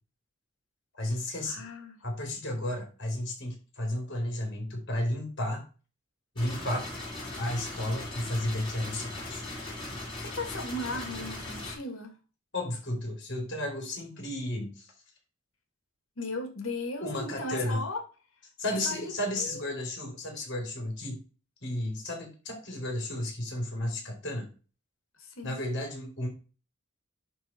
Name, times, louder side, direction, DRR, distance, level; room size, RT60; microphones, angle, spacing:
voice 1, 0.9-1.6 2.0-5.6 6.3-6.8 7.4-9.4 12.5-14.9 17.0-17.8 18.6-21.2 21.6-24.4 25.4-26.3, left 1 dB, 60° left, 3.4 m, -33 dB
voice 2, 1.5-1.9 10.2-12.1 16.2-18.0 18.9-19.1 19.4-19.6 25.2-25.6, left 2 dB, 80° left, 2.0 m, -36 dB
sound 1, 6.4-11.7, left 2 dB, 25° left, 3.7 m, -39 dB
10.5 x 3.7 x 4.4 m
head